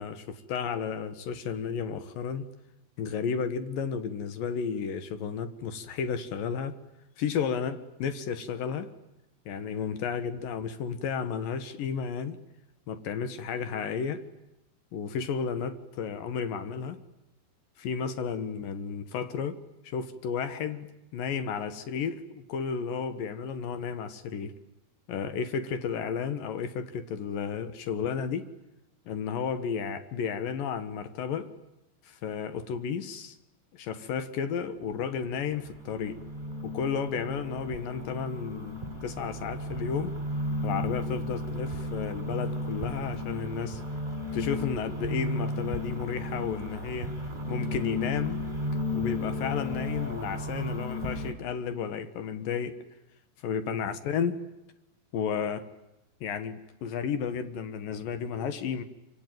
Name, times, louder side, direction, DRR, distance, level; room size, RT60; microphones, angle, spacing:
voice 1, 0.0-2.5 3.0-6.8 7.2-8.9 9.5-12.4 12.9-14.2 14.9-17.0 17.8-19.6 19.8-20.9 21.1-24.5 25.1-28.5 29.1-31.5 32.1-33.4 33.7-36.2 36.6-40.2 40.6-43.8 44.3-47.1 47.5-48.4 48.9-52.8 53.4-54.4 55.1-55.7 56.2-58.8, left 6 dB, 70° left, 11 dB, 2.7 m, -32 dB
sound 1, 34.8-51.3, left 1 dB, 10° right, 3.7 m, -34 dB
26.0 x 24.5 x 9.1 m, 0.94 s
omnidirectional pair, 4.5 m